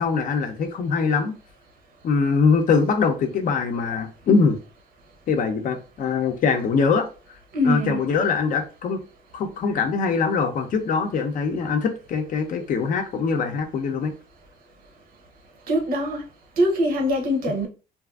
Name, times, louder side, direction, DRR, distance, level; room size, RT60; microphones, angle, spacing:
voice 1, 0.0-1.3 2.0-4.6 5.3-7.1 7.6-9.0 9.3-14.1, left 5 dB, 50° left, 0.6 m, -22 dB
voice 2, 7.5-8.0 15.7-16.2 16.6-17.7, equal, 60° right, 0.8 m, -22 dB
2.7 x 2.4 x 2.3 m
cardioid pair, 110°, 17 cm